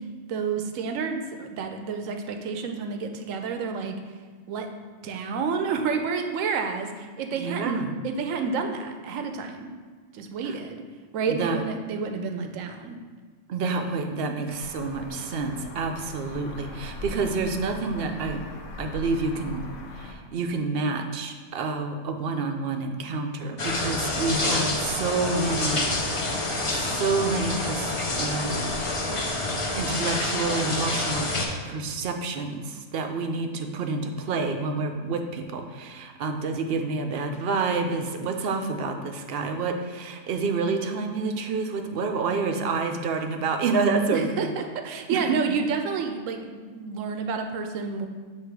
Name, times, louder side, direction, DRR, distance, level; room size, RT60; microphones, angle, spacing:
voice 1, 0.3-4.0 4.5-4.7 5.0-9.7 10.1-10.8 11.1-13.0 44.1-48.1, right 5 dB, 85° right, 5 dB, 1.0 m, -29 dB
voice 2, 7.3-7.9 10.4-10.6 11.3-11.6 13.5-18.4 18.8-19.6 20.0-26.3 26.7-28.6 29.8-31.3 31.6-44.5 45.1-45.2, right 4 dB, 60° right, 5 dB, 0.7 m, -28 dB
sound 1, 14.5-20.1, left 2 dB, 75° left, 1.0 m, -40 dB
sound 2, 23.6-31.5, left 2 dB, 35° left, 0.6 m, -27 dB
7.9 x 2.9 x 4.6 m, 1.5 s
omnidirectional pair, 1.3 m